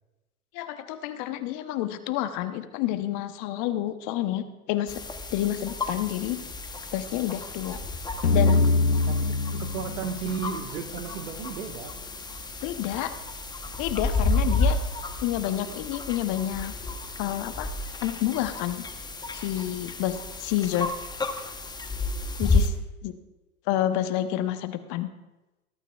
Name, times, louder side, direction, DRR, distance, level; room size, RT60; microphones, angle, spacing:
voice 1, 0.5-5.0 5.3-6.4 6.9-7.8 8.3-8.6 12.6-13.1 13.8-14.8 15.2-16.7 17.2-17.7 18.0-18.8 19.3-20.9 22.4-22.7 23.0-23.1 23.7-25.1, left 13 dB, 45° left, 10 dB, 1.0 m, -29 dB
sound 1, 4.9-22.7, left 3 dB, 10° left, 0.9 m, -31 dB
sound 2, 8.2-11.2, left 3 dB, 80° left, 1.1 m, -24 dB
voice 2, 9.1-11.9, right 7 dB, 65° right, 6 dB, 1.6 m, -34 dB
20.5 x 12.5 x 2.4 m, 1.1 s
hypercardioid pair, 95°, 44 cm